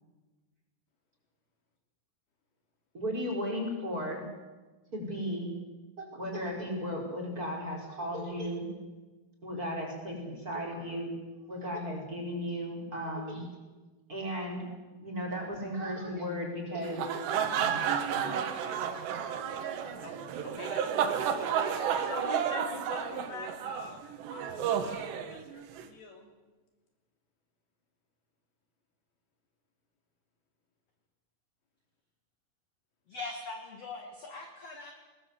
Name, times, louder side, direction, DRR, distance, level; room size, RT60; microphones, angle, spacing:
voice 1, 2.9-4.2 4.9-5.5 6.0-8.6 9.4-11.1 11.5-13.5 14.1-14.7 15.0-18.9 19.3-19.4, equal, 20° right, 0 dB, 4.9 m, -36 dB
sound 1, 16.8-25.9, right 8 dB, 80° right, 3.7 m, -32 dB
voice 2, 20.4-21.4 21.7-26.3, left 4 dB, 65° left, 3 dB, 4.6 m, -44 dB
voice 3, 33.1-34.9, left 3 dB, 45° left, 3 dB, 2.6 m, -41 dB
21.0 x 20.0 x 8.1 m, 1.2 s
omnidirectional pair, 4.8 m